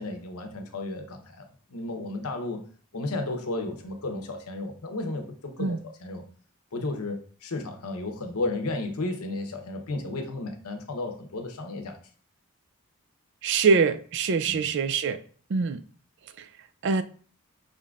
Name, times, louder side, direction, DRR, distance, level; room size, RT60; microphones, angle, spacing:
voice 1, 0.0-2.6 2.9-6.2 6.7-12.0 14.5-14.6, left 2 dB, 90° left, 0.9 m, -33 dB
voice 2, 13.4-15.2 15.5-15.8 16.4-16.5 16.8-17.0, right 5 dB, 55° right, 0.4 m, -24 dB
5.4 x 3.7 x 2.4 m
head